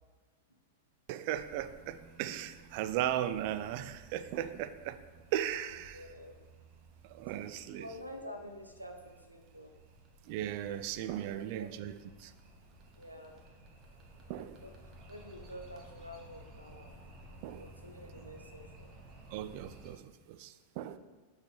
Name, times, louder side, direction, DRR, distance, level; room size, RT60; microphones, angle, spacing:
voice 1, 1.1-5.0 5.3-6.1 7.0-7.9 10.2-12.3 14.3-14.6 17.4-17.7 19.3-21.0, right 11 dB, 45° right, 12 dB, 0.3 m, -37 dB
sound 1, 1.3-19.9, right 2 dB, 30° right, 1.0 m, -56 dB
voice 2, 5.9-6.5 7.7-9.8 11.2-11.7 12.9-13.4 14.6-14.7 15.1-17.0 17.6-18.9, left 1 dB, 90° right, 5 dB, 0.6 m, -48 dB
6.0 x 3.2 x 5.6 m, 1.3 s
figure-of-eight pair, 90°, 0 cm